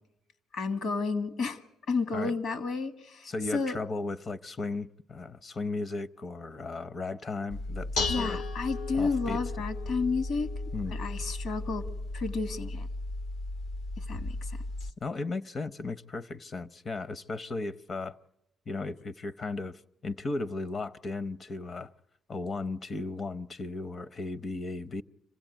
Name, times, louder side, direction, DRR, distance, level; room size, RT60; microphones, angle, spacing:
voice 1, 0.5-1.6 1.9-3.8 8.1-10.5 10.9-11.9 12.1-12.9 14.0-14.6, left 4 dB, 70° left, 1.8 m, -31 dB
voice 2, 3.2-8.4 8.9-9.4 10.7-11.0 15.0-18.2 18.7-21.9 22.3-25.0, left 3 dB, 40° left, 0.8 m, -36 dB
Dishes pots and pans, 7.5-14.9, left 2 dB, 90° left, 1.5 m, -35 dB
26.0 x 16.0 x 9.2 m
cardioid pair, 90°, 0 cm